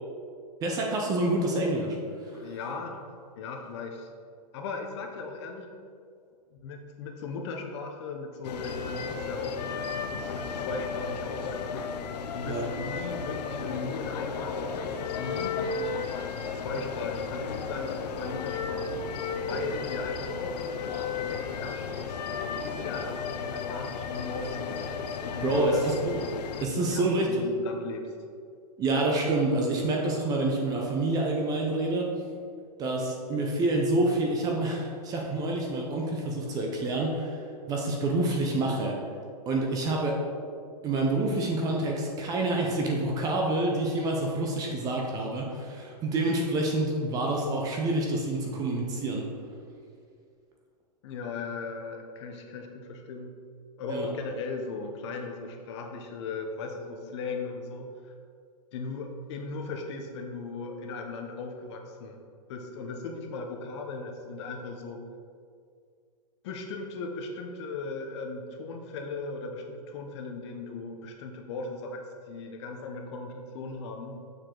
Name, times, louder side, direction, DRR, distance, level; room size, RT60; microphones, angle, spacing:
voice 1, 0.6-2.0 2.2-2.3 12.5-12.7 25.4-25.7 26.1-26.2 26.6-27.3 28.8-32.1 32.8-39.0 39.5-40.2 40.8-49.3 53.9-54.1, right 2 dB, 20° right, 0 dB, 0.6 m, -27 dB
voice 2, 2.3-3.0 3.4-4.1 4.5-5.7 6.5-12.1 12.3-16.0 16.5-19.0 19.4-22.2 22.6-24.8 25.2-25.8 26.9-28.2 51.0-53.3 53.8-58.1 58.7-62.2 62.5-65.0 66.4-74.2, left 3 dB, 45° left, 3 dB, 0.8 m, -37 dB
sound 1, 8.4-26.7, left 5 dB, 75° left, 0.6 m, -34 dB
6.6 x 4.7 x 3.8 m, 2.2 s
hypercardioid pair, 155°, 21 cm